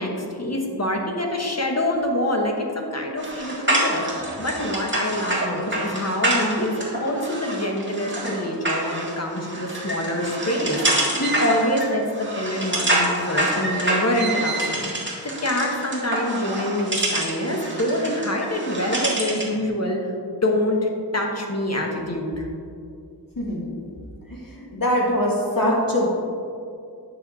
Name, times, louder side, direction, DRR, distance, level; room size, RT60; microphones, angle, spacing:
voice 1, 0.0-14.9 15.2-20.0 20.3-20.8 21.1-22.5, left 1 dB, 40° left, 1 dB, 1.2 m, -25 dB
sound 1, 3.2-19.6, right 1 dB, 30° right, 1.8 m, -27 dB
voice 2, 23.4-23.7 24.7-26.1, equal, 55° left, -3 dB, 1.9 m, -22 dB
8.7 x 6.3 x 4.1 m, 2.4 s
wide cardioid pair, 60°, 41 cm